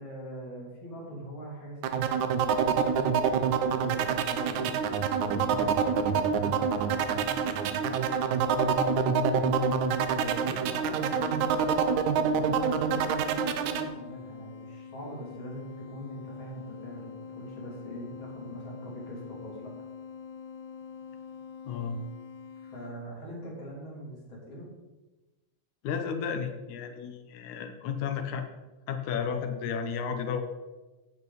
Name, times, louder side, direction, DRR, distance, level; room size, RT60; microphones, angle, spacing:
voice 1, 0.0-4.7 5.2-9.1 10.1-19.7 22.6-24.7, right 1 dB, 40° left, -4 dB, 3.9 m, -42 dB
sound 1, 1.8-13.9, right 7 dB, 80° right, 2.1 m, -26 dB
sound 2, 8.6-10.0 11.2-22.9, left 8 dB, 60° left, 1.0 m, -41 dB
voice 2, 21.7-22.0 25.8-28.5 28.9-30.4, left 6 dB, 80° left, 7 dB, 2.3 m, -33 dB
14.0 x 9.0 x 4.1 m, 1.1 s
omnidirectional pair, 3.4 m